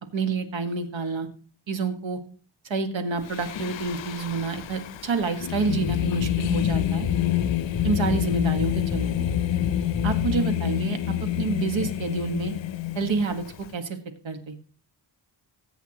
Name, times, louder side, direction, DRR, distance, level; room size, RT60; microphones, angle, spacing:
voice 1, 0.1-1.3 1.7-2.2 2.6-7.1 7.8-9.3 10.0-12.5 12.9-13.4 13.7-14.0 14.2-14.5, right 4 dB, 80° right, 7 dB, 1.6 m, -28 dB
Singing, 3.3-13.7, left 13 dB, 75° left, 0.6 m, -28 dB
sound 1, 5.9-10.4, left 4 dB, 20° left, 6.2 m, -32 dB
20.5 x 8.1 x 2.9 m, 0.41 s
wide cardioid pair, 100°, 45 cm